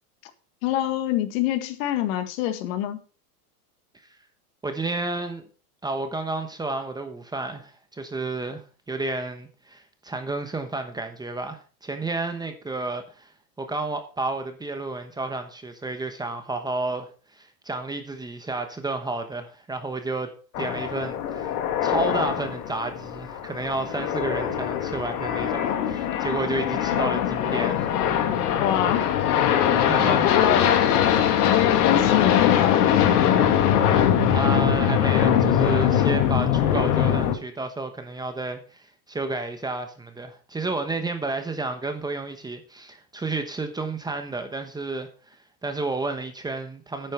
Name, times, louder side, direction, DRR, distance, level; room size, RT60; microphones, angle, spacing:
voice 1, 0.6-3.0 28.6-29.1 30.0-30.7 31.5-32.9, left 12 dB, 55° left, 1.7 m, -25 dB
voice 2, 4.6-5.4 5.8-13.3 13.6-21.6 21.8-27.9 29.7-30.5 34.3-45.4 45.6-47.1, right 3 dB, 10° right, 1.0 m, -31 dB
sound 1, 20.5-37.4, left 9 dB, 70° left, 2.1 m, -22 dB
10.5 x 9.0 x 4.4 m
supercardioid pair, 140°, 47 cm